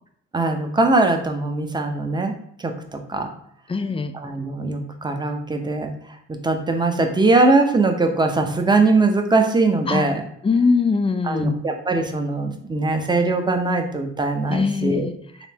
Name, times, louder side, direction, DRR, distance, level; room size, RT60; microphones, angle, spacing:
voice 1, 0.3-2.3 2.6-3.3 4.2-5.9 6.4-10.2 11.2-15.1, right 3 dB, 15° right, 5 dB, 0.7 m, -21 dB
voice 2, 3.7-4.1 9.9-10.1 10.4-11.6 14.5-15.2, left 4 dB, 20° left, 9 dB, 0.4 m, -21 dB
4.2 x 3.3 x 2.8 m, 0.68 s
supercardioid pair, 55°, 32 cm